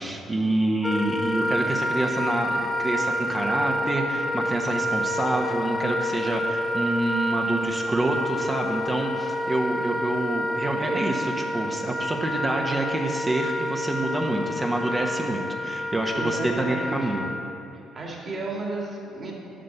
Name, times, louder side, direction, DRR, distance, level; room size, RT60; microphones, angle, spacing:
voice 1, 0.0-17.3, right 2 dB, 25° right, 1 dB, 1.2 m, -27 dB
Wind instrument woodwind instrument, 0.8-17.4, equal, 25° left, 0.8 m, -28 dB
voice 2, 16.1-17.2 17.7-19.3, right 2 dB, 40° right, -2 dB, 2.5 m, -33 dB
7.7 x 6.5 x 7.1 m, 2.7 s
hypercardioid pair, 60°, 0 cm